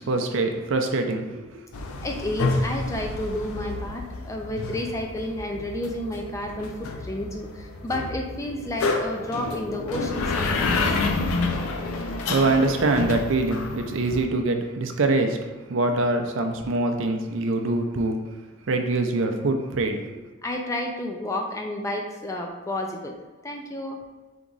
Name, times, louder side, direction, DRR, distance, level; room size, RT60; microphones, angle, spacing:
voice 1, 0.0-1.6 11.4-18.2 18.7-20.1, right 2 dB, 65° right, 4 dB, 0.5 m, -24 dB
sound 1, 1.7-14.2, left 3 dB, 85° left, 0.5 m, -29 dB
voice 2, 2.0-10.9 20.4-23.2 23.4-24.0, left 1 dB, 15° left, 2 dB, 0.3 m, -31 dB
3.5 x 3.0 x 3.9 m, 1.2 s
head